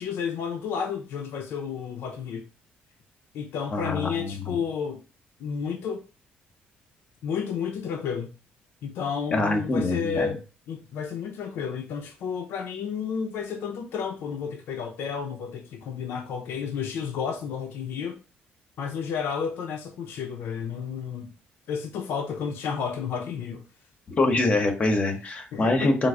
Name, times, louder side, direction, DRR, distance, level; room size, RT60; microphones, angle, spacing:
voice 1, 0.0-2.4 3.3-5.0 5.4-6.0 7.2-8.3 8.8-18.2 18.8-21.3 21.7-23.6 25.5-26.0, left 6 dB, 75° left, 0.4 m, -31 dB
voice 2, 3.7-4.6 9.3-10.3 24.2-26.1, left 2 dB, 35° left, 0.7 m, -24 dB
3.1 x 2.0 x 3.5 m
cardioid pair, 85°, 4 cm